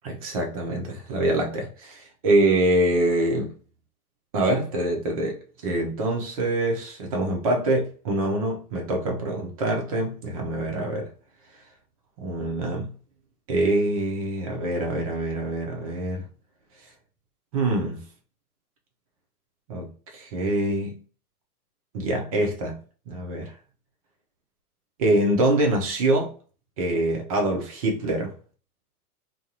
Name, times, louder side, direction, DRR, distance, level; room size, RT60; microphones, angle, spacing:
voice 1, 0.0-3.5 4.3-11.1 12.2-12.9 13.5-16.3 17.5-18.0 19.7-21.0 21.9-22.8 23.1-23.5 25.0-26.3 26.8-28.3, right 1 dB, 25° right, 0.4 m, -25 dB
2.3 x 2.0 x 2.7 m
figure-of-eight pair, 105°, 45 cm